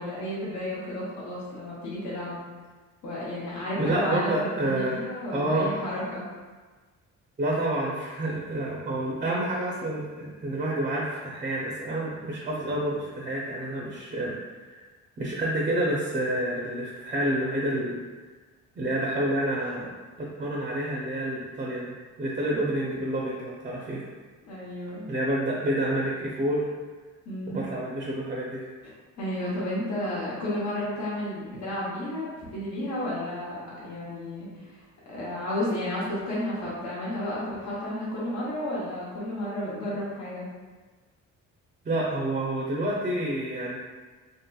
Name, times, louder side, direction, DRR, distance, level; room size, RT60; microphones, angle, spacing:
voice 1, 0.0-2.4 3.0-6.3 24.5-25.1 27.3-27.6 29.2-40.5, left 1 dB, 65° left, -7 dB, 0.9 m, -32 dB
voice 2, 3.8-5.0 5.3-5.7 7.4-14.8 15.2-17.9 18.8-19.9 20.2-21.9 22.2-24.1 25.1-26.7 27.5-28.6 41.8-43.8, right 1 dB, 25° right, -4 dB, 0.5 m, -28 dB
2.7 x 2.5 x 2.2 m, 1.4 s
cardioid pair, 90°, 30 cm